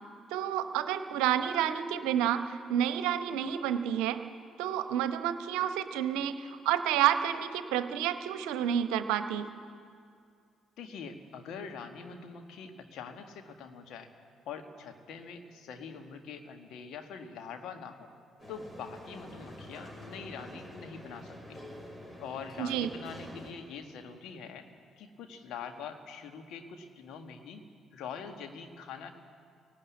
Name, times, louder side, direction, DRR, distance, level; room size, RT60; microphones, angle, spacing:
voice 1, 0.3-4.2 4.6-9.5 22.6-22.9, right 10 dB, 70° right, 10 dB, 0.9 m, -29 dB
voice 2, 10.8-14.1 14.5-18.1 18.5-21.6 22.2-24.7 25.0-27.6 27.9-29.1, left 6 dB, 60° left, 5 dB, 1.7 m, -44 dB
sound 1, 18.4-23.5, equal, 20° left, 5.7 m, -47 dB
18.5 x 18.0 x 8.6 m, 2.3 s
figure-of-eight pair, 45°, 0 cm